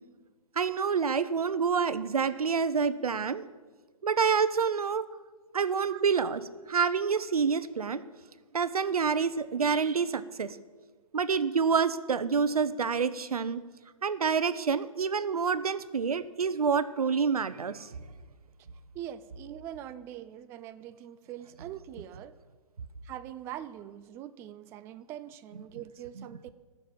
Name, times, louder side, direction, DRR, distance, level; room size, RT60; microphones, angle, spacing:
voice 1, 0.6-3.4 4.0-5.0 5.5-6.4 6.7-8.0 8.5-10.6 11.1-13.6 14.0-17.9 26.2-26.3, right 6 dB, 85° right, 14 dB, 0.9 m, -27 dB
voice 2, 18.9-22.4 23.0-26.5, right 11 dB, 15° right, 12 dB, 0.3 m, -43 dB
13.5 x 6.9 x 9.1 m, 1.4 s
hypercardioid pair, 135°, 19 cm